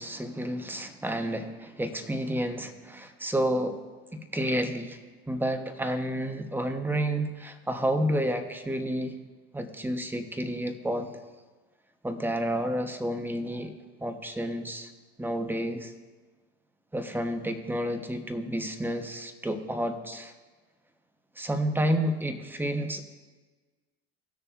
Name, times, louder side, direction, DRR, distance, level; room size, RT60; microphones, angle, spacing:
voice 1, 0.0-3.8 4.1-5.0 5.3-9.1 9.5-11.1 12.0-13.7 14.0-14.9 15.2-15.9 16.9-20.3 21.4-23.0, equal, 5° right, 7 dB, 1.1 m, -30 dB
18.5 x 6.7 x 2.6 m, 1.3 s
hypercardioid pair, 70°, 32 cm